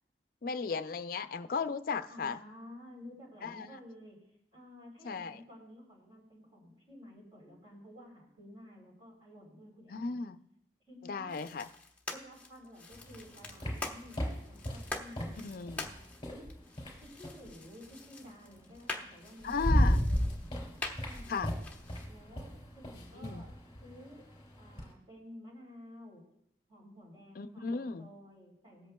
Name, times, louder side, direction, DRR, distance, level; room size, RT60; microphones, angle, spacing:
voice 1, 0.4-2.4 3.4-3.8 5.0-5.4 9.9-10.4 11.0-11.7 15.4-15.9 19.4-20.0 21.3-21.5 23.1-23.5 27.4-28.1, left 5 dB, 55° left, 11 dB, 0.4 m, -36 dB
voice 2, 2.1-4.3 4.5-10.3 10.9-11.4 12.1-15.4 15.8-16.5 17.0-20.5 21.0-21.4 22.1-24.3 24.6-26.2 26.7-28.9, left 1 dB, 30° right, -2 dB, 3.5 m, -53 dB
sound 1, 11.3-22.1, left 3 dB, 10° left, 0.9 m, -46 dB
sound 2, 12.9-17.5 18.8-18.9 19.3-24.9, equal, 25° left, 2.8 m, -34 dB
20.0 x 8.2 x 2.3 m, 0.74 s
head